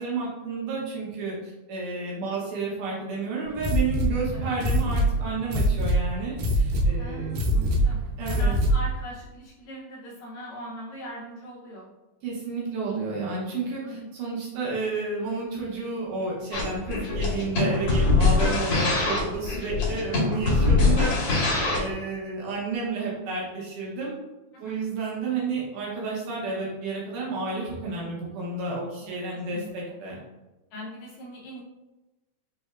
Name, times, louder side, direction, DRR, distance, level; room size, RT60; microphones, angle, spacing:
voice 1, 0.0-7.8 8.2-8.6 12.2-24.2 24.6-30.2, right 3 dB, 75° right, -5 dB, 2.3 m, -31 dB
sound 1, 3.6-9.0, right 1 dB, 90° right, 2.6 m, -24 dB
voice 2, 7.0-8.0 8.3-11.9 13.8-14.1 16.9-17.2 24.6-24.8 29.0-29.1 29.5-29.7 30.7-31.6, equal, 80° left, -4 dB, 1.6 m, -40 dB
sound 2, 16.5-21.9, left 3 dB, 55° left, 1.9 m, -23 dB
5.4 x 3.3 x 2.4 m, 1.1 s
omnidirectional pair, 4.0 m